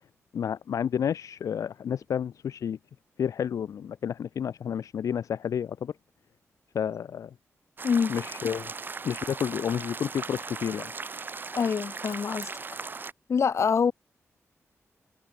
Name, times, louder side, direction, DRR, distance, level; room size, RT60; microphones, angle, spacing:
voice 1, 0.3-2.8 3.2-5.9 6.7-7.3 8.1-8.7 9.0-10.9, left 8 dB, 85° left, 1.7 m, -30 dB
sound 1, 7.8-13.1, right 4 dB, 40° right, 2.4 m, -38 dB
voice 2, 11.5-12.5 13.3-13.9, left 6 dB, 60° left, 4.2 m, -25 dB
wide cardioid pair, 110°, 5 cm